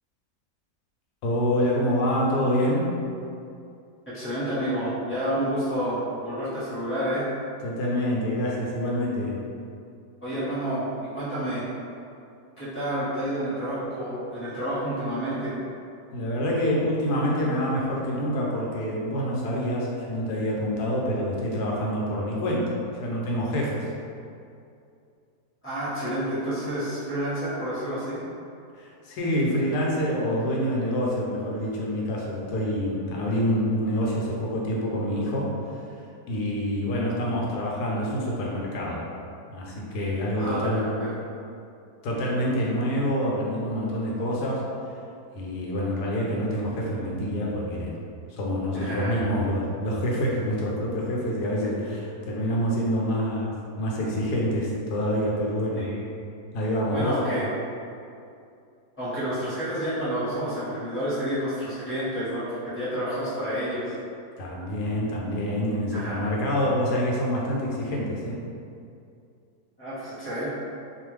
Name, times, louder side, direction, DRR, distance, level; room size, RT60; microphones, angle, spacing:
voice 1, 1.2-2.9 7.6-9.4 16.1-22.7 23.0-23.8 28.7-35.6 36.3-39.0 39.5-40.9 42.0-44.6 45.3-47.9 48.3-55.8 56.5-57.2 64.4-68.4, equal, 80° left, -3 dB, 1.2 m, -26 dB
voice 2, 4.1-7.3 10.2-10.8 11.1-11.7 12.6-15.6 25.6-28.2 40.4-41.4 48.7-49.2 55.7-56.1 56.9-57.4 59.0-63.9 65.9-66.3 69.8-70.5, equal, 10° left, -13 dB, 1.0 m, -29 dB
2.6 x 2.4 x 3.1 m, 2.5 s
omnidirectional pair, 1.7 m